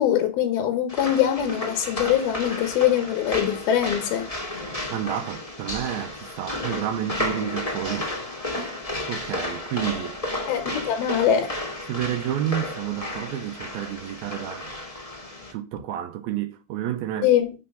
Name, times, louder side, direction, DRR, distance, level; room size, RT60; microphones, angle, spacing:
voice 1, 0.0-4.3 10.5-11.5 17.2-17.5, left 10 dB, 70° left, 2.8 m, -22 dB
sound 1, 0.9-15.5, left 1 dB, 15° left, 1.3 m, -32 dB
voice 2, 4.9-8.2 8.5-8.8 9.1-10.2 11.9-14.8 15.5-17.3, right 11 dB, 80° right, 2.3 m, -30 dB
9.9 x 6.6 x 5.5 m
omnidirectional pair, 4.8 m